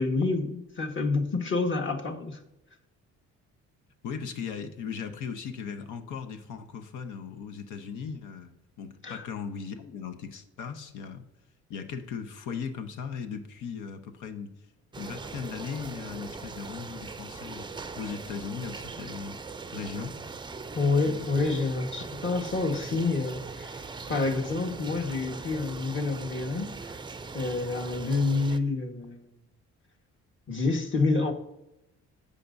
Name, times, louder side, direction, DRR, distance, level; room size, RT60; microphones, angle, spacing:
voice 1, 0.0-2.4 9.0-9.2 20.7-27.0 27.3-29.3 30.5-31.3, left 3 dB, 40° left, 3 dB, 1.5 m, -28 dB
voice 2, 4.0-11.2 11.7-14.5 15.0-17.7 18.0-19.4 19.7-20.2 21.2-21.5, left 6 dB, 85° left, 7 dB, 1.0 m, -38 dB
sound 1, 14.9-28.6, right 4 dB, 15° right, 0.4 m, -40 dB
15.0 x 5.2 x 2.6 m, 0.90 s
cardioid pair, 90°, 30 cm